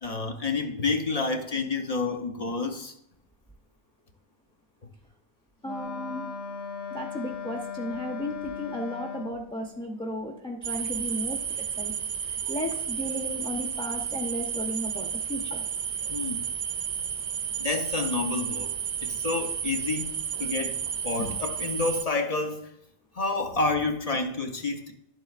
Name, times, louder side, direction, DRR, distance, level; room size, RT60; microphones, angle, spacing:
voice 1, 0.0-2.9 16.1-16.4 17.6-18.7 19.0-22.7 23.1-24.9, left 3 dB, 45° left, 5 dB, 0.7 m, -29 dB
Wind instrument woodwind instrument, 5.6-9.5, left 6 dB, 80° left, 1.0 m, -37 dB
voice 2, 5.6-6.3 6.9-11.9 12.2-15.6, left 1 dB, 5° left, 2 dB, 0.4 m, -34 dB
sound 1, 10.6-22.0, right 8 dB, 55° right, 0.6 m, -32 dB
10.0 x 7.4 x 2.4 m, 0.76 s
omnidirectional pair, 1.1 m